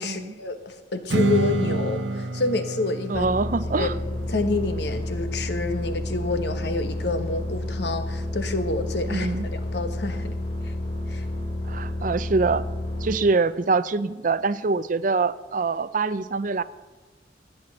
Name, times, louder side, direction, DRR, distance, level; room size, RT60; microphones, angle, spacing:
voice 1, 0.0-3.3 3.7-3.9 4.3-10.3 10.6-10.7 11.1-11.2, left 3 dB, 65° left, 8 dB, 1.3 m, -28 dB
Strum, 1.1-6.3, right 2 dB, 80° right, 0.8 m, -29 dB
sound 1, 3.1-13.2, left 1 dB, 35° left, 3.6 m, -30 dB
voice 2, 3.1-3.9 9.1-9.5 11.7-12.6 13.0-16.6, right 4 dB, 45° right, 15 dB, 0.5 m, -24 dB
15.0 x 6.0 x 9.9 m, 1.3 s
head